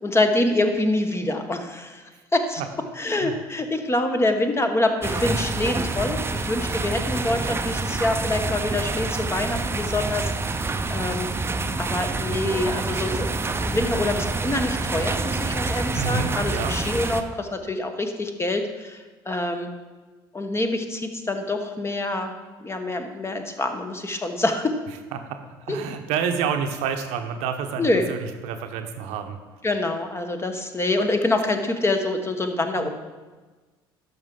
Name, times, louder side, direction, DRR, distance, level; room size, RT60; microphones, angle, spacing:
voice 1, 0.0-2.6 3.0-11.3 11.8-13.3 13.6-19.7 20.3-22.3 22.6-24.8 25.7-25.8 27.8-28.1 29.6-32.9, left 2 dB, 20° left, 6 dB, 1.1 m, -26 dB
sound 1, 5.0-17.2, right 3 dB, 20° right, 0.6 m, -27 dB
voice 2, 15.9-16.7 25.1-25.4 25.6-28.2 28.4-29.4 32.8-32.9, right 7 dB, 65° right, 6 dB, 0.8 m, -28 dB
12.0 x 5.9 x 3.8 m, 1.3 s
figure-of-eight pair, 55°, 12 cm